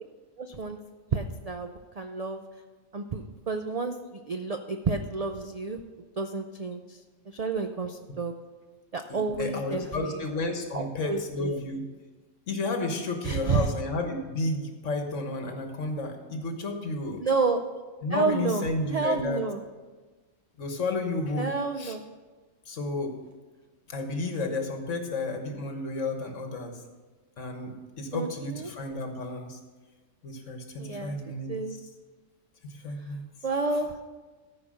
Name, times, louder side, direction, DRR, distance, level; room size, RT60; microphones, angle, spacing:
voice 1, 0.4-0.8 1.1-2.4 2.9-5.8 6.2-7.0 7.3-8.3 8.9-10.2 10.7-11.6 13.2-13.7 17.2-17.6 18.1-19.6 21.4-22.0 28.1-28.7 30.8-31.2 31.5-31.8 33.0-33.1 33.4-34.0, right 4 dB, 70° right, 6 dB, 0.3 m, -30 dB
voice 2, 9.1-11.8 12.5-17.2 18.0-19.4 20.6-22.0 22.7-23.1 23.9-26.7 27.4-29.6 30.2-31.5 32.6-33.2, left 2 dB, 65° left, 4 dB, 1.6 m, -32 dB
14.0 x 5.1 x 6.3 m, 1.3 s
omnidirectional pair, 1.4 m